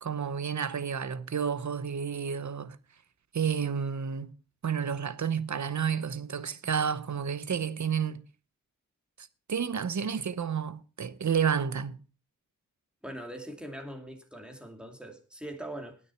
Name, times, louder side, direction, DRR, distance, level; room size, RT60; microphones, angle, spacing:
voice 1, 0.0-2.8 3.3-4.3 4.6-8.2 9.2-12.0, right 7 dB, 60° right, 0.9 m, -30 dB
voice 2, 13.0-16.0, right 1 dB, 5° right, 2.4 m, -41 dB
18.5 x 6.5 x 4.4 m
wide cardioid pair, 120°, 32 cm